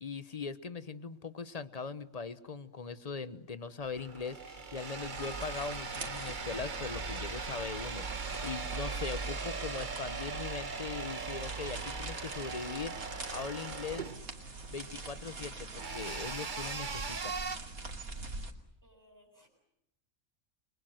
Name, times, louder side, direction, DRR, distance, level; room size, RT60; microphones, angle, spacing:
voice 1, 0.0-14.1 14.7-17.3, left 5 dB, 30° left, 14 dB, 1.1 m, -40 dB
sound 1, 3.8-17.6, right 4 dB, 35° right, 1.3 m, -40 dB
sound 2, 5.0-18.5, right 3 dB, 85° right, 3.1 m, -43 dB
Piano, 5.2-8.1, left 1 dB, 5° left, 2.4 m, -54 dB
voice 2, 18.8-19.5, equal, 10° right, 2 dB, 8.0 m, -64 dB
29.5 x 24.0 x 7.8 m, 0.82 s
omnidirectional pair, 1.5 m